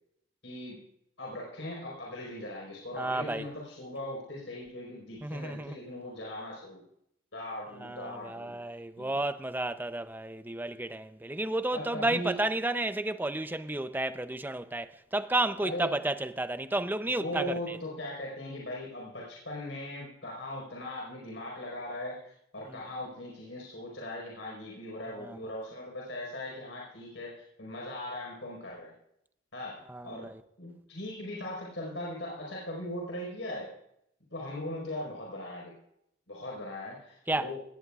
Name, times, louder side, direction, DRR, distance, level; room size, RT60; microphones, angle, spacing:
voice 1, 0.4-0.8 1.2-6.8 7.3-8.6 9.0-9.1 11.7-12.4 15.6-15.9 17.0-28.9 29.5-30.3 30.6-33.7 34.3-35.7 36.3-37.6, left 1 dB, 65° left, 4.6 m, -39 dB
voice 2, 3.0-3.5 5.2-5.8 7.8-17.8 25.2-25.4 29.9-30.4 37.3-37.5, right 2 dB, 10° right, 0.5 m, -32 dB
19.0 x 15.5 x 2.4 m
head